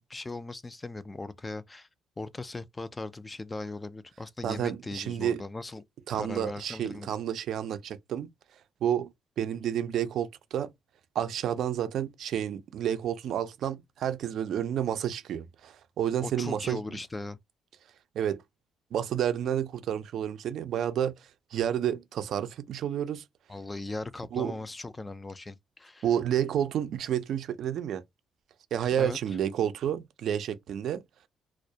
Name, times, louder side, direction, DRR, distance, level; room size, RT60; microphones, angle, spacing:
voice 1, 0.0-1.9 2.2-5.8 6.1-7.1 16.2-17.4 23.5-26.1 29.0-29.2, left 2 dB, 20° left, 0.3 m, -39 dB
voice 2, 4.4-5.4 6.1-8.3 8.8-9.1 9.4-10.7 11.2-16.8 18.1-18.4 18.9-21.1 21.5-23.2 24.3-24.6 26.0-28.0 28.7-31.0, right 10 dB, 70° right, 0.4 m, -30 dB
2.2 x 2.1 x 2.7 m
cardioid pair, 90°, 0 cm